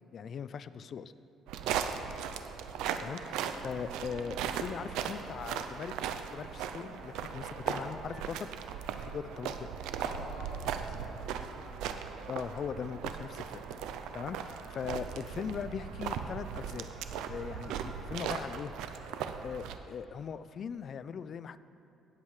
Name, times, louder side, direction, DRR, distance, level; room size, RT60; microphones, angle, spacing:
voice 1, 0.1-1.1 3.0-8.5 9.0-9.7 12.3-13.6 14.1-16.9 17.3-18.7 19.4-21.6, left 7 dB, 50° left, 14 dB, 0.3 m, -40 dB
sound 1, 1.5-19.8, right 8 dB, 90° right, 0.5 m, -38 dB
sound 2, 2.3-19.7, equal, ahead, 1.6 m, -58 dB
sound 3, 6.4-9.8, equal, 30° left, 2.1 m, -61 dB
voice 2, 10.0-11.7, left 3 dB, 80° left, -2 dB, 1.8 m, -49 dB
17.5 x 7.4 x 3.2 m, 2.8 s
cardioid pair, 105°, 0 cm